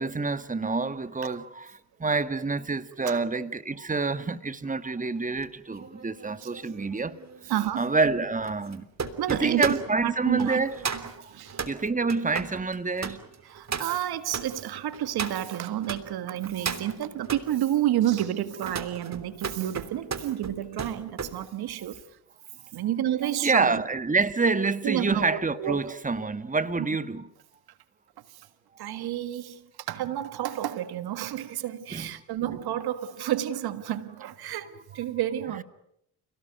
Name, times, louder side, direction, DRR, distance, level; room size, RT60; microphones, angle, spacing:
voice 1, 0.0-8.9 9.3-10.8 11.2-11.3 11.7-13.2 16.5-16.7 23.4-27.3 31.9-32.1 32.5-32.6, right 4 dB, 20° right, 1.7 m, -27 dB
sound 1, 5.4-16.0 16.4-17.5 18.0-21.3 21.7-22.0, right 5 dB, 45° right, 3.2 m, -36 dB
voice 2, 7.5-7.9 9.2-9.7 10.0-10.6 11.3-11.6 13.5-22.0 22.7-23.8 24.8-25.8 28.8-29.6 29.9-35.6, right 12 dB, 70° right, 1.7 m, -30 dB
29.5 x 18.0 x 9.2 m
hypercardioid pair, 50°, 39 cm